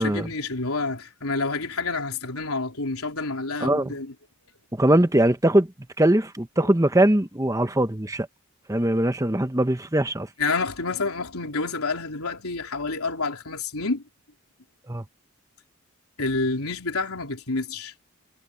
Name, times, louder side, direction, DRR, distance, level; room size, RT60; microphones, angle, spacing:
voice 1, 0.0-4.1 6.6-6.7 10.4-14.0 16.2-17.9, left 3 dB, 90° left, 3.8 m, -28 dB
voice 2, 3.6-3.9 4.7-5.7 6.0-8.3 8.7-10.3 14.9-15.0, right 1 dB, 15° right, 1.1 m, -21 dB
head